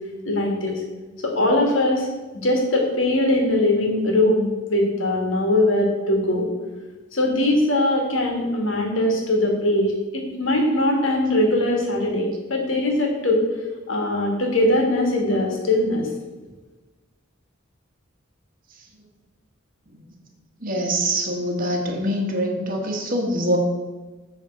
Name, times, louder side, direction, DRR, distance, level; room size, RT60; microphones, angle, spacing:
voice 1, 0.2-0.8 1.2-2.1 2.3-6.5 7.1-13.5 13.9-16.1, left 1 dB, 80° left, 1 dB, 1.6 m, -21 dB
voice 2, 20.6-23.6, right 1 dB, 45° right, 1 dB, 1.2 m, -24 dB
7.7 x 3.5 x 5.7 m, 1.2 s
head